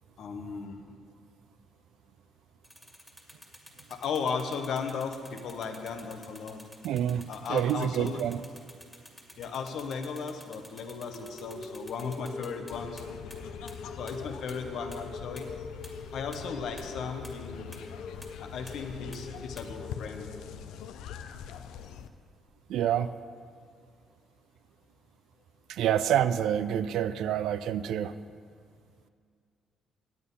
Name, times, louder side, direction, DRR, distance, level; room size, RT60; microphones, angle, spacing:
voice 1, 0.2-0.9 3.9-6.6 7.3-8.2 9.4-13.0 14.0-15.5 16.1-17.7 18.4-20.3, left 5 dB, 70° left, 6 dB, 0.9 m, -36 dB
sound 1, 2.6-13.0 13.3-13.4 13.7-13.8 14.1-14.2 14.5-14.6 14.9-15.0 15.4-15.5 15.8-15.9 16.3-16.4 16.8-16.9 17.2-17.3 17.7-17.8 18.2-18.3 18.7-18.8 19.1-19.2 19.6-19.7, left 1 dB, 5° left, 2.0 m, -49 dB
voice 2, 6.8-8.4 22.7-23.1 25.7-28.1, right 10 dB, 80° right, 14 dB, 0.4 m, -27 dB
sound 2, 11.0-20.5, left 3 dB, 50° left, 1.4 m, -44 dB
sound 3, 12.7-22.1, left 8 dB, 90° left, 0.4 m, -44 dB
9.4 x 8.4 x 5.5 m, 2.1 s
cardioid pair, 90°, 0 cm